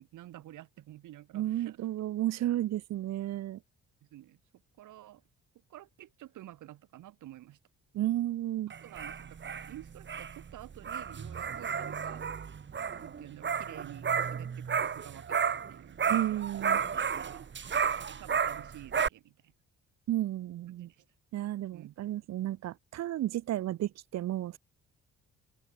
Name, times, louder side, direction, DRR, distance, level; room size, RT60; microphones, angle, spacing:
voice 1, 0.0-1.8 4.0-4.4 4.8-5.2 5.7-7.6 8.8-12.3 12.9-16.7 17.2-17.5 18.0-19.5 20.9-21.1 21.7-21.9, right 14 dB, 85° right, 7.8 m, -50 dB
voice 2, 1.3-3.6 7.9-8.7 16.1-16.8 20.1-20.9 21.3-24.6, right 13 dB, 60° right, 0.6 m, -32 dB
sound 1, 8.7-15.7 16.0-19.1, right 6 dB, 40° right, 1.6 m, -32 dB
open air
cardioid pair, 90°, 30 cm